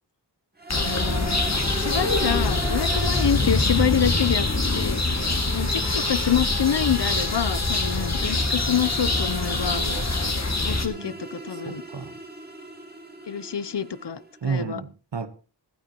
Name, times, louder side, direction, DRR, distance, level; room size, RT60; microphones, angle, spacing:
sound 1, 0.6-14.4, right 1 dB, 25° right, 2.8 m, -38 dB
voice 1, 0.7-1.4 1.7-4.5 4.7-5.0 5.5-9.9 10.6-11.8 13.3-14.8, left 8 dB, 75° left, 0.9 m, -26 dB
sound 2, 0.7-10.9, left 2 dB, 40° left, 2.1 m, -24 dB
voice 2, 8.0-8.7 9.4-10.1 10.8-11.2 11.5-12.1 14.4-15.3, right 5 dB, 85° right, 1.4 m, -34 dB
25.5 x 9.2 x 3.0 m
wide cardioid pair, 65°, 42 cm